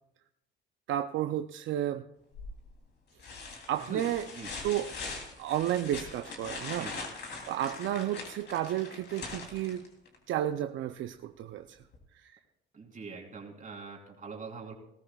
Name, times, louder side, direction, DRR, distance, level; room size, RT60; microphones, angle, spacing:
voice 1, 0.9-2.1 3.7-4.3 4.6-4.9 5.4-7.1 7.4-9.9 10.3-11.8 12.1-12.4, right 12 dB, 75° right, 9 dB, 0.5 m, -32 dB
sound 1, 2.3-2.7 3.2-10.2 11.9-12.0, left 4 dB, 60° left, 3.0 m, -42 dB
voice 2, 6.7-7.0 12.7-14.7, right 4 dB, 40° right, 0 dB, 3.5 m, -43 dB
19.5 x 14.0 x 2.3 m, 0.82 s
cardioid pair, 90°, 20 cm